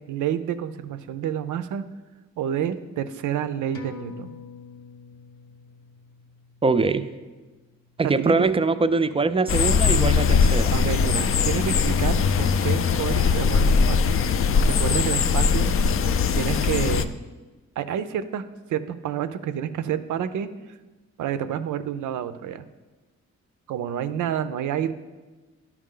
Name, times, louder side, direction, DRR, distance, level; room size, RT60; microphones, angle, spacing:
voice 1, 0.1-1.8 2.4-4.4 8.0-8.5 10.7-14.1 14.7-15.7 16.4-17.2 17.8-20.5 21.2-22.6 23.7-24.9, right 9 dB, 90° right, 11 dB, 0.5 m, -29 dB
sound 1, 3.7-8.7 9.0-9.1, left 6 dB, 85° left, 0.9 m, -46 dB
voice 2, 6.6-7.1 8.0-10.7, right 3 dB, 20° right, 12 dB, 0.3 m, -22 dB
sound 2, 9.5-17.0, left 5 dB, 50° left, 0.4 m, -21 dB
11.0 x 4.7 x 3.8 m, 1.2 s
cardioid pair, 75°, 29 cm